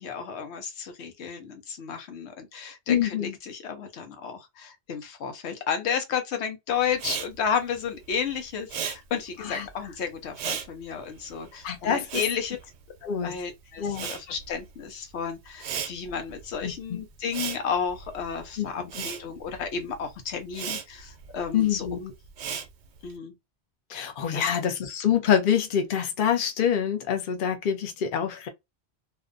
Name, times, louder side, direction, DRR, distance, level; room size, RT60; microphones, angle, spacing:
voice 1, 0.0-12.6 13.0-22.1 22.5-22.6 23.0-23.3 24.3-24.5, left 7 dB, 85° left, 1.0 m, -32 dB
voice 2, 2.9-3.3 9.4-9.7 11.6-12.2 13.1-13.3 13.8-14.1 16.6-17.0 18.6-18.7 21.5-22.0 23.9-28.5, left 8 dB, 60° left, 0.7 m, -26 dB
Respiratory sounds, 6.9-13.4 13.7-23.1, right 8 dB, 85° right, 0.9 m, -37 dB
2.5 x 2.2 x 2.5 m
omnidirectional pair, 1.1 m